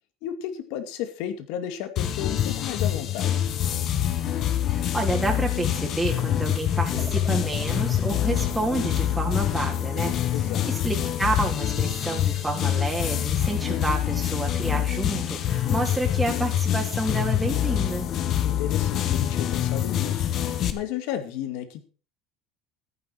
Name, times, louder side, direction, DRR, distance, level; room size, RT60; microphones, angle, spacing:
voice 1, 0.2-3.4 10.3-10.7 18.4-21.8, left 10 dB, 75° left, 9 dB, 2.2 m, -33 dB
sound 1, 2.0-20.7, left 11 dB, 50° left, 1.6 m, -25 dB
voice 2, 4.7-18.1, right 2 dB, 5° right, -1 dB, 3.2 m, -29 dB
sound 2, 6.9-9.4, left 3 dB, 30° left, 4.7 m, -38 dB
14.0 x 10.0 x 4.6 m, 0.37 s
supercardioid pair, 115°, 0 cm